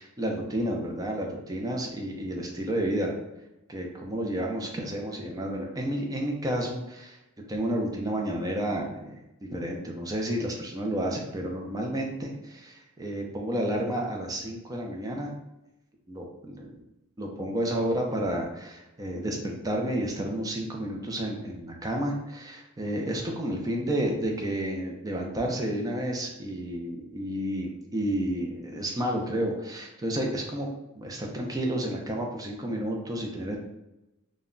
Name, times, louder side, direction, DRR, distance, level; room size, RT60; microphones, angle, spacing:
voice 1, 0.0-3.1 3.7-7.2 7.5-9.1 9.4-15.4 16.1-16.8 17.2-30.7 31.0-33.6, right 1 dB, 15° right, 0 dB, 0.4 m, -31 dB
2.1 x 2.1 x 3.6 m, 0.94 s
head